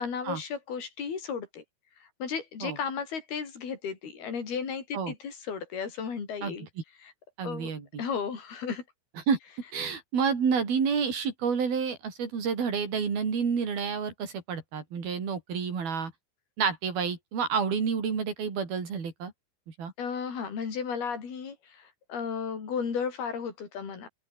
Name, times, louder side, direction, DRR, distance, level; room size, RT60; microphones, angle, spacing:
voice 1, 0.0-1.6 2.0-6.7 7.0-7.1 7.4-7.7 8.0-8.8 20.0-24.1, left 6 dB, 55° left, 6.9 m, -34 dB
voice 2, 7.4-8.0 9.3-9.4 9.7-16.1 16.6-19.3 19.8-19.9, right 6 dB, 55° right, 6.4 m, -29 dB
open air
omnidirectional pair, 5.3 m